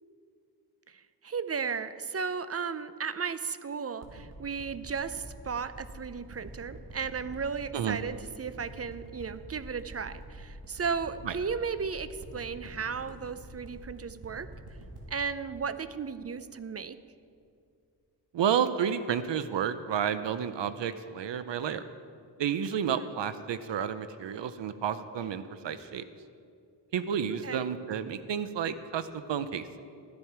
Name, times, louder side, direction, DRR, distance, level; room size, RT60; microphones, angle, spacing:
voice 1, 0.9-14.5 15.1-17.0 22.8-23.1 27.3-27.7, right 5 dB, 35° right, 13 dB, 0.5 m, -35 dB
sound 1, 4.0-16.8 17.4-17.5, right 1 dB, 65° right, 2.4 m, -47 dB
voice 2, 18.3-21.8 22.4-26.0 26.9-29.8, right 8 dB, 90° right, 12 dB, 0.6 m, -31 dB
13.5 x 10.5 x 4.6 m, 2.3 s
wide cardioid pair, 85°, 42 cm